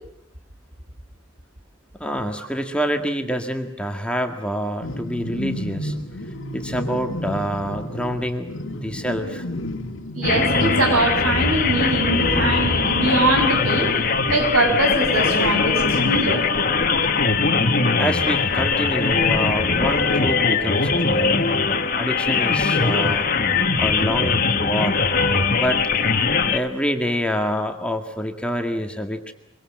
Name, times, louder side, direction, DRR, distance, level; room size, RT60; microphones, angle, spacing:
voice 1, 2.0-5.9 6.5-8.5 8.8-9.5 18.0-21.4 22.0-23.3 23.8-25.0 25.5-25.9 26.5-29.3, equal, 5° left, 4 dB, 1.9 m, -26 dB
sound 1, 4.8-18.5 18.9-21.8, left 1 dB, 70° left, 2.2 m, -33 dB
voice 2, 10.1-13.9 14.3-16.5, right 2 dB, 85° right, 4 dB, 7.1 m, -22 dB
sound 2, 10.2-26.6, left 4 dB, 40° left, 1.7 m, -21 dB
25.0 x 24.0 x 7.6 m, 0.77 s
head